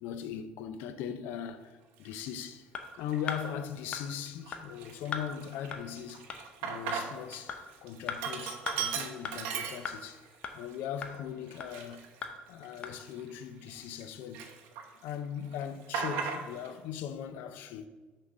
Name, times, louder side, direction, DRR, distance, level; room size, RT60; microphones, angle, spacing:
voice 1, 0.0-2.7 3.0-6.2 6.6-10.2 10.5-12.1 12.5-14.5 15.0-17.9, left 9 dB, 70° left, 0.6 m, -39 dB
Sink (filling or washing), 2.1-2.3 2.9-3.5 3.9-4.0 4.3-7.4 7.7-10.3 10.7-10.8 11.5-14.0 14.3-15.1 15.4-16.7, right 6 dB, 80° right, 0.9 m, -37 dB
sound 1, 2.7-2.8 3.3-3.4 3.9-4.0 4.5-4.6 5.1-5.2 5.7-5.8 6.3-6.4 6.9-7.0 7.5-7.6 8.1-8.2 8.7-8.8 9.2-9.3 9.8-10.0 10.4-10.5 11.0-11.1 11.6-11.7 12.2-12.3 12.8-12.9, left 6 dB, 35° left, 0.7 m, -36 dB
6.5 x 3.8 x 6.0 m
cardioid pair, 155°, 3 cm